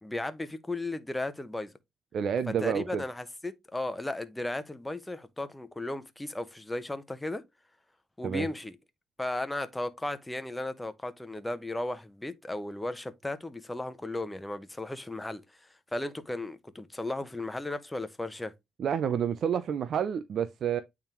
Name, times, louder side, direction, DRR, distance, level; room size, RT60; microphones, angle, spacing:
voice 1, 0.0-1.7 2.6-7.4 8.2-8.8 9.2-18.5, left 2 dB, 10° left, 0.9 m, -35 dB
voice 2, 2.1-3.0 8.2-8.5 18.8-20.8, right 8 dB, 60° right, 0.5 m, -29 dB
8.7 x 3.6 x 2.9 m
cardioid pair, 90°, 0 cm